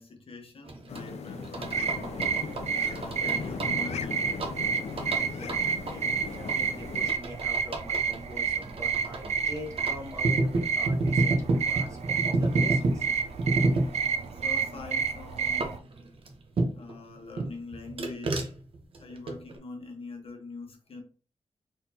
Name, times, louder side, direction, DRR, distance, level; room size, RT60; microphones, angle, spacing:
voice 1, 0.0-2.3 2.7-4.3 14.3-15.9 16.7-18.6 19.0-21.0, left 3 dB, 60° left, 1.1 m, -44 dB
sound 1, 0.7-17.0 17.4-19.6, right 2 dB, 60° right, 0.9 m, -32 dB
sound 2, 0.9-7.1, left 6 dB, 80° left, 0.5 m, -38 dB
sound 3, 1.6-15.8, right 6 dB, 85° right, 0.5 m, -30 dB
voice 2, 5.0-13.1, left 1 dB, 30° right, 1.3 m, -44 dB
4.3 x 3.9 x 2.8 m
wide cardioid pair, 140°, 11 cm